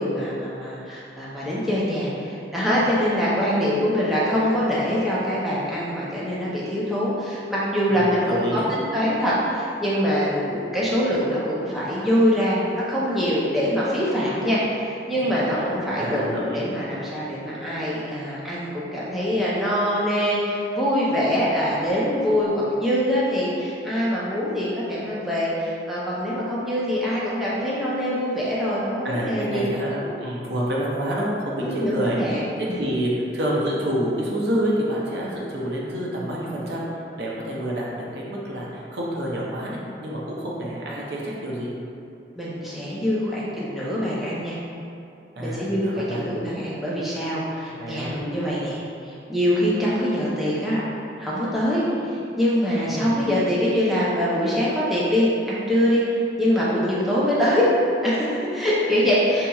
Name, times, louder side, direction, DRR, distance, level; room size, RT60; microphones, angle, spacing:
voice 1, 0.0-29.6 30.0-30.1 31.6-32.9 42.4-44.6 45.4-50.8 51.2-56.0 56.4-57.7 58.0-59.5, equal, ahead, -9 dB, 0.5 m, -24 dB
voice 2, 7.9-8.7 15.2-15.6 16.0-16.6 29.0-32.2 32.6-36.9 37.2-41.7 45.4-46.3 47.7-48.1 52.9-53.1, equal, 75° right, -4 dB, 0.6 m, -28 dB
4.1 x 2.8 x 2.3 m, 2.6 s
head